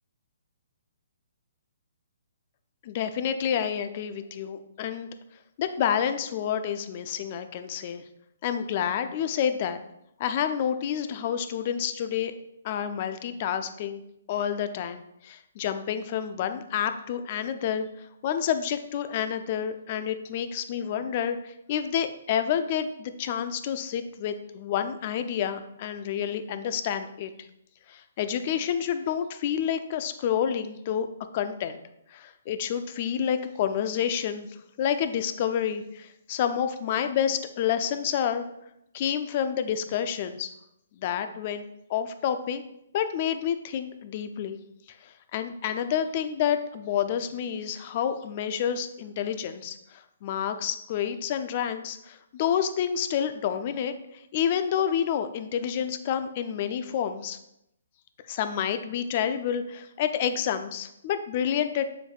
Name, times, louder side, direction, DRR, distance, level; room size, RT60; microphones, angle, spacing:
voice 1, 2.8-5.1 5.6-8.0 8.4-9.8 10.2-12.3 12.6-14.0 14.3-27.3 27.9-31.1 31.3-31.8 32.1-34.5 34.8-38.4 38.9-40.5 41.0-42.6 42.9-44.6 45.0-57.4 58.3-61.9, left 9 dB, 40° left, 9 dB, 0.6 m, -29 dB
7.3 x 7.0 x 2.4 m, 0.80 s
hypercardioid pair, 140°, 0 cm